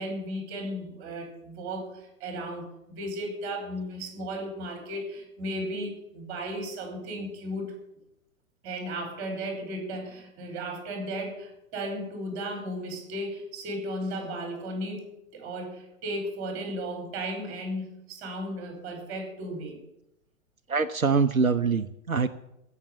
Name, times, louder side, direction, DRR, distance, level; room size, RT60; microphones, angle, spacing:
voice 1, 0.0-7.7 8.6-15.0 15.3-19.8, right 1 dB, 30° right, 5 dB, 4.7 m, -35 dB
voice 2, 20.7-22.3, right 5 dB, 90° right, 11 dB, 0.8 m, -24 dB
16.0 x 6.7 x 9.8 m, 0.85 s
figure-of-eight pair, 110°, 41 cm